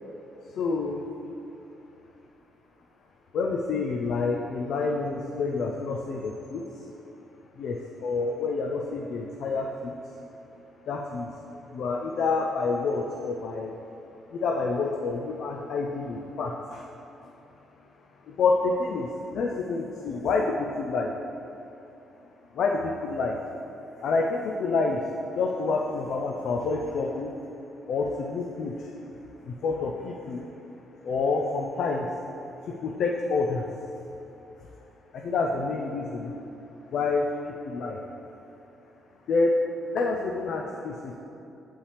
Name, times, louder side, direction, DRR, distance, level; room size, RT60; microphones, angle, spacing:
voice 1, 0.6-1.0 3.3-6.6 7.6-9.9 10.9-11.3 11.7-13.7 14.3-16.8 18.3-21.1 22.5-23.4 24.0-25.0 25.3-27.3 27.9-28.9 29.5-30.5 31.0-32.1 32.7-33.7 35.1-36.3 36.9-38.0 39.3-39.6 39.9-41.2, left 4 dB, 70° left, 1 dB, 0.5 m, -28 dB
7.2 x 5.5 x 3.3 m, 2.9 s
cardioid pair, 90°, 0 cm